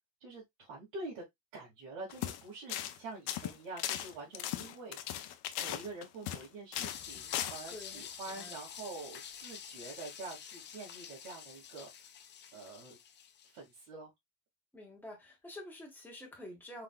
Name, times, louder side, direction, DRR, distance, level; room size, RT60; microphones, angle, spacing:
voice 1, 0.2-1.2 1.5-5.0 5.6-11.9 12.5-13.0 13.4-14.1, right 3 dB, 85° right, 2.4 m, -46 dB
sound 1, 2.1-2.4 2.7-3.0 3.3-6.5 6.7-7.0 7.3-7.6, left 12 dB, 60° left, 0.7 m, -37 dB
sound 2, 6.7-13.6, left 8 dB, 25° left, 0.4 m, -48 dB
voice 2, 7.7-8.5 14.7-16.8, left 1 dB, 5° left, 1.4 m, -48 dB
4.5 x 3.9 x 2.3 m
cardioid pair, 175°, 44 cm